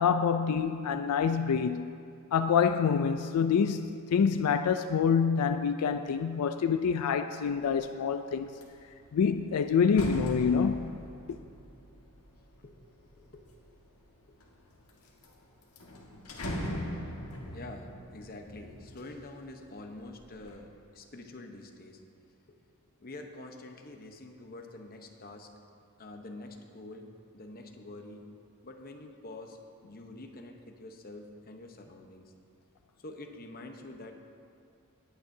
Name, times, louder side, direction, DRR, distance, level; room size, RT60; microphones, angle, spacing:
voice 1, 0.0-2.0 2.3-8.5 9.1-11.0, left 6 dB, 85° left, 0.4 m, -26 dB
sound 1, 7.5-7.9 8.3-13.6 14.2-14.9 15.2-15.3 15.6-19.5 19.9-20.5, equal, 70° left, 1.6 m, -40 dB
voice 2, 12.6-13.4 17.5-22.0 22.5-22.6 23.0-25.5 26.0-27.1 27.3-28.3 28.6-29.6 29.8-32.3 33.0-34.1, left 2 dB, 40° left, 0.9 m, -46 dB
19.0 x 9.0 x 2.7 m
head